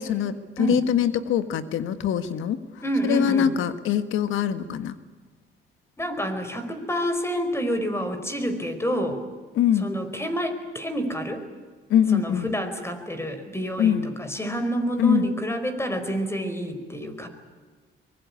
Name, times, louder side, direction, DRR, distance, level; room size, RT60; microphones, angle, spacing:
voice 1, 0.0-2.6 3.0-4.9 9.5-9.9 11.9-12.5 13.8-14.1 15.0-15.3, left 9 dB, 85° left, 11 dB, 1.7 m, -23 dB
voice 2, 2.8-3.5 6.0-9.2 9.8-11.4 12.1-17.3, equal, 15° left, 8 dB, 4.7 m, -28 dB
23.5 x 21.0 x 9.7 m, 1.4 s
cardioid pair, 90°, 20 cm